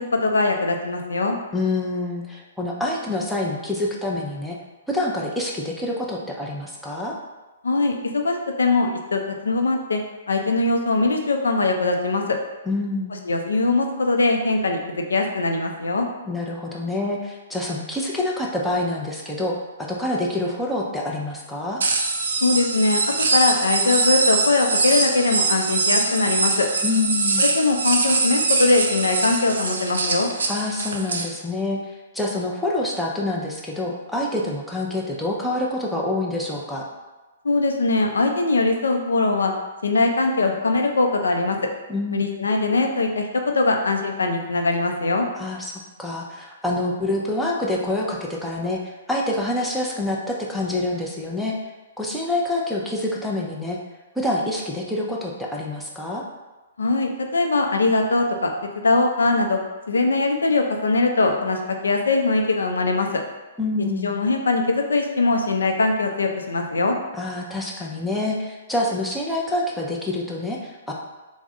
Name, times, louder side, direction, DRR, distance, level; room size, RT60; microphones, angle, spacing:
voice 1, 0.1-1.4 7.6-10.0 10.3-12.4 13.2-16.1 22.4-23.0 23.3-26.7 27.4-30.3 37.4-39.5 39.8-41.6 42.1-45.3 56.8-59.6 59.9-63.1 64.0-67.0, left 3 dB, 80° left, 3 dB, 0.5 m, -21 dB
voice 2, 1.5-4.6 4.9-7.2 12.7-13.2 16.3-19.5 19.9-21.8 26.8-27.4 30.5-31.8 32.1-36.8 41.9-42.2 45.4-45.7 46.0-51.5 52.0-53.8 54.2-56.2 63.6-64.1 67.1-70.9, left 2 dB, 5° left, -3 dB, 0.6 m, -26 dB
sound 1, 21.8-31.3, right 3 dB, 75° right, 0.5 m, -23 dB
3.5 x 2.1 x 3.6 m, 1.2 s
hypercardioid pair, 125°, 0 cm